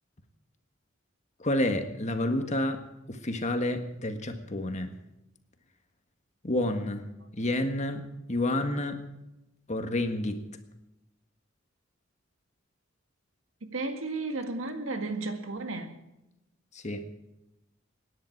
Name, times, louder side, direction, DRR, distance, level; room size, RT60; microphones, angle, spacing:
voice 1, 1.4-5.0 6.4-7.0 7.4-9.0 9.7-10.4 16.7-17.0, left 1 dB, 35° left, 1.6 m, -29 dB
voice 2, 13.7-15.9, right 3 dB, 85° right, 1.8 m, -33 dB
26.0 x 10.5 x 4.6 m
head